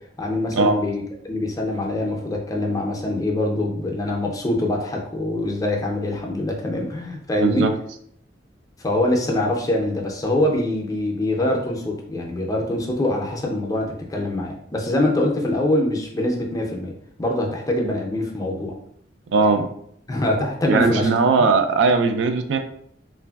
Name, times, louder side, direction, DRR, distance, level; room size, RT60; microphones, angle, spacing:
voice 1, 0.2-7.7 8.8-16.9 17.2-18.7 19.4-19.7 20.1-21.1 21.4-21.5, left 1 dB, 20° left, 0 dB, 0.4 m, -24 dB
voice 2, 7.4-7.7 19.3-19.6 20.7-22.6, right 4 dB, 80° right, 8 dB, 0.3 m, -19 dB
3.0 x 2.5 x 2.3 m, 0.68 s
head